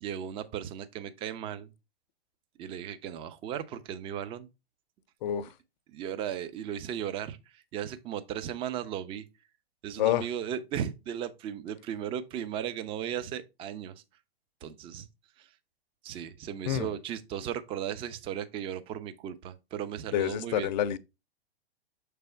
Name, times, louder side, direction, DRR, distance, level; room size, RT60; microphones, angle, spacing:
voice 1, 0.0-1.7 2.6-4.5 5.9-9.2 9.8-13.9 14.6-15.1 15.4-15.5 16.0-20.7, right 9 dB, 15° right, 0.4 m, -36 dB
voice 2, 20.1-21.0, left 11 dB, 45° left, 0.5 m, -27 dB
6.6 x 3.4 x 4.3 m
figure-of-eight pair, 110°, 32 cm